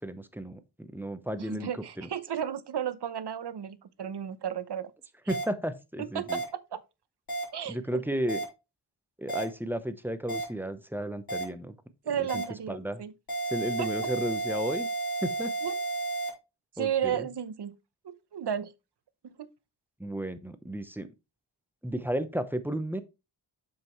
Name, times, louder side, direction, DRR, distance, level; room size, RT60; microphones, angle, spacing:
voice 1, 0.0-2.1 5.3-6.4 7.7-8.4 9.2-11.8 12.2-13.0 13.5-14.9 15.2-15.5 16.8-17.3 20.0-21.1 21.8-23.0, right 1 dB, 5° right, 0.8 m, -33 dB
voice 2, 1.4-4.9 6.0-6.8 7.5-8.0 12.0-13.1 13.8-13.9 15.6-15.8 16.7-17.7 18.0-18.7 19.2-19.5, right 9 dB, 65° right, 0.8 m, -33 dB
sound 1, 5.3-5.4 6.3-6.4 7.3-7.4 8.3-8.4 9.3-9.4 10.3-10.4 11.3-11.4 12.3-12.4 13.3-16.3, right 3 dB, 55° left, 3.9 m, -32 dB
7.5 x 5.7 x 3.1 m
wide cardioid pair, 90°, 44 cm